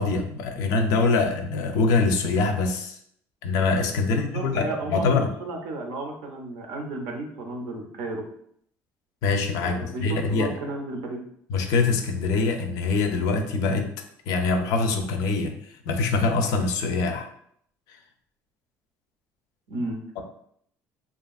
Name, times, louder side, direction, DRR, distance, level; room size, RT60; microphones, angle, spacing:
voice 1, 0.0-3.0 3.4-5.3 9.2-10.5 11.5-13.9 14.3-15.5 15.9-17.3, left 3 dB, 75° left, 6 dB, 0.4 m, -24 dB
voice 2, 4.0-8.2 9.6-11.2 19.7-20.2, right 2 dB, 90° right, 2 dB, 0.6 m, -33 dB
2.7 x 2.4 x 2.3 m, 0.67 s
cardioid pair, 120°, 6 cm